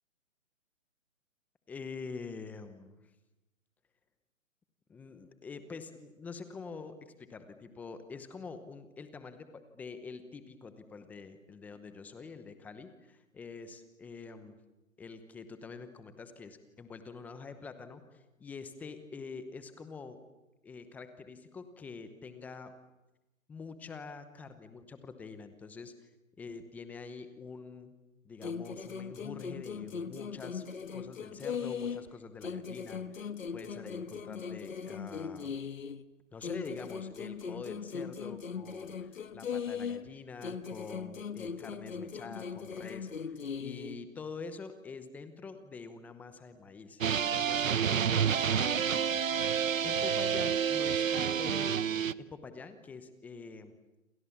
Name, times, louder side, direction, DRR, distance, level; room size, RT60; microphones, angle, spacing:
voice 1, 1.7-3.0 4.9-14.6 15.0-20.2 20.6-22.7 23.5-26.1 26.4-27.9 28.2-30.6 30.9-35.6 36.3-53.7, left 4 dB, 5° left, 10 dB, 0.9 m, -46 dB
sound 1, 28.4-32.1 32.4-36.0 36.4-40.1 40.4-44.0, left 6 dB, 75° left, 1.6 m, -39 dB
sound 2, 47.0-52.1, right 8 dB, 75° right, 1.0 m, -29 dB
28.5 x 27.5 x 7.2 m, 1.0 s
hypercardioid pair, 150°, 40 cm